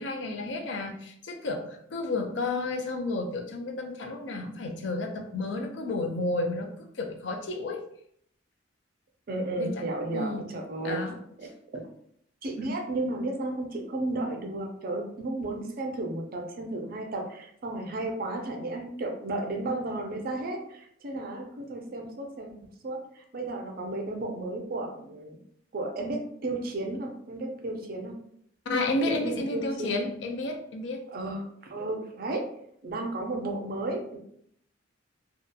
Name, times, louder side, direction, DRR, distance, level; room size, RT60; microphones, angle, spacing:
voice 1, 0.0-6.7 6.9-7.8 9.6-10.6 10.8-11.2 28.7-31.0, left 2 dB, 65° left, 4 dB, 0.4 m, -31 dB
voice 2, 9.3-11.0 11.4-11.5 12.4-22.5 22.8-25.4 25.7-28.2 29.1-29.9 31.1-32.5 32.8-34.2, right 2 dB, 50° right, 3 dB, 0.5 m, -33 dB
2.8 x 2.3 x 2.2 m, 0.68 s
head